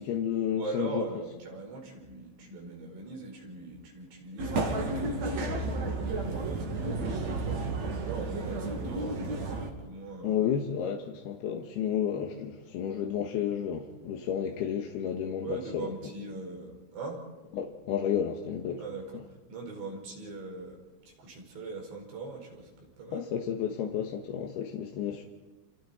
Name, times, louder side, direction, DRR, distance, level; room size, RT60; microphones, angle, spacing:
voice 1, 0.0-1.1 10.2-15.9 17.5-18.8 23.1-25.3, left 9 dB, 65° left, 3.0 m, -31 dB
voice 2, 0.6-10.4 15.4-17.2 18.8-19.2 19.5-20.8 21.2-23.2, right 3 dB, 65° right, 7.2 m, -41 dB
sound 1, 4.4-9.7, right 3 dB, 45° right, 3.1 m, -32 dB
29.0 x 28.5 x 4.4 m
omnidirectional pair, 5.4 m